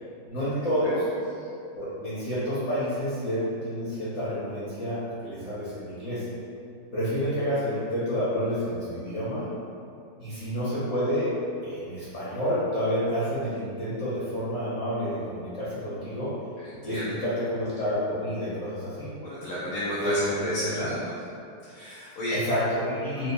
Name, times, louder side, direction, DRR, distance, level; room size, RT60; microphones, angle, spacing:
voice 1, 0.3-1.1 1.7-6.3 6.9-9.5 10.2-11.3 11.6-16.3 16.8-19.1 20.0-20.9 22.3-23.3, equal, 50° left, -11 dB, 0.9 m, -29 dB
voice 2, 16.6-17.1 19.2-21.1 21.7-22.4, equal, 80° left, -9 dB, 1.4 m, -32 dB
4.0 x 2.2 x 2.6 m, 2.5 s
omnidirectional pair, 2.1 m